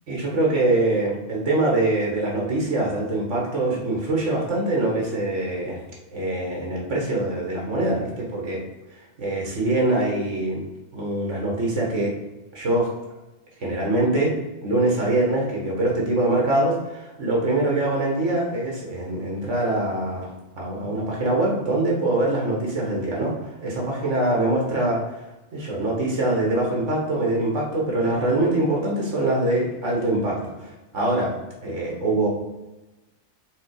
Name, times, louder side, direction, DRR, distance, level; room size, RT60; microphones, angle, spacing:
voice 1, 0.1-5.8 6.1-8.6 9.2-10.6 10.9-12.1 12.5-12.9 13.6-14.3 14.6-20.3 20.6-25.0 25.5-31.3 31.6-32.3, right 2 dB, 70° right, -1 dB, 1.9 m, -23 dB
5.7 x 3.7 x 4.9 m, 1.0 s
omnidirectional pair, 1.3 m